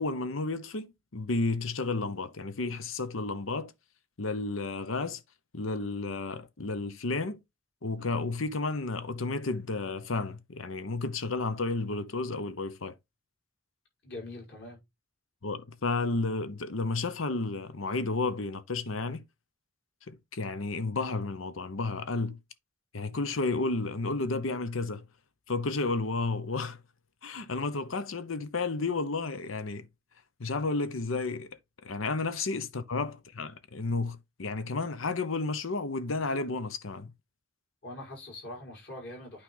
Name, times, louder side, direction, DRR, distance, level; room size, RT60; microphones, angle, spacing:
voice 1, 0.0-3.7 4.2-5.2 5.5-7.4 7.8-12.9 15.4-19.2 20.1-22.4 22.9-25.0 25.5-26.8 27.2-29.9 30.4-31.5 31.8-37.1, left 3 dB, 90° left, 0.9 m, -32 dB
voice 2, 14.0-14.8 32.5-32.7 37.8-39.4, left 1 dB, 55° left, 5.6 m, -43 dB
8.8 x 4.9 x 3.9 m
head